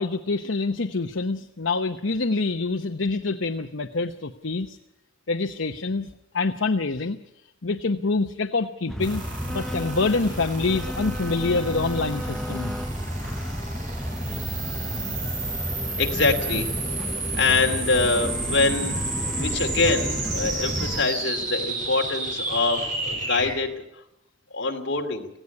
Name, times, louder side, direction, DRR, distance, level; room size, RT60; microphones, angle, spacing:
voice 1, 0.0-4.8 5.3-6.1 6.3-7.2 7.6-9.2 9.5-12.7, left 3 dB, 80° left, 7 dB, 0.9 m, -26 dB
sound 1, 8.9-21.0, equal, 5° left, 0.8 m, -31 dB
sound 2, 9.0-23.5, right 3 dB, 40° right, 6.0 m, -32 dB
voice 2, 16.0-16.7 17.3-23.8 24.5-25.3, left 3 dB, 60° left, 3 dB, 2.7 m, -24 dB
18.0 x 16.0 x 9.7 m, 0.83 s
head